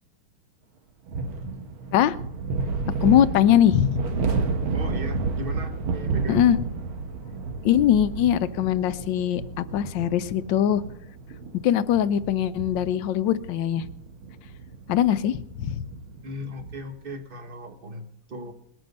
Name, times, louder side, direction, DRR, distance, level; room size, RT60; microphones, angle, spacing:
sound 1, 1.1-16.9, right 4 dB, 80° right, 2.1 m, -31 dB
voice 1, 2.9-4.0 6.3-6.6 7.6-10.8 11.6-13.8 14.9-15.8, left 10 dB, 70° left, 14 dB, 1.3 m, -21 dB
voice 2, 4.0-4.3 4.7-6.4 16.2-18.5, equal, 35° right, 7 dB, 1.1 m, -38 dB
20.5 x 9.2 x 5.4 m, 0.75 s
omnidirectional pair, 2.2 m